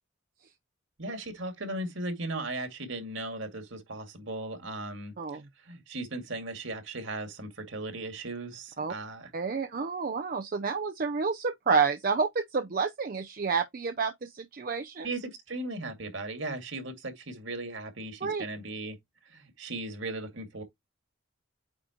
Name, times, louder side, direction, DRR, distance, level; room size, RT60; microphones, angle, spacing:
voice 1, 1.0-5.1 5.7-9.3 15.0-19.0 19.3-20.6, right 2 dB, 65° right, 2.1 m, -37 dB
voice 2, 9.3-15.1 18.2-18.4, right 5 dB, 45° right, 0.5 m, -29 dB
8.8 x 3.8 x 2.9 m
head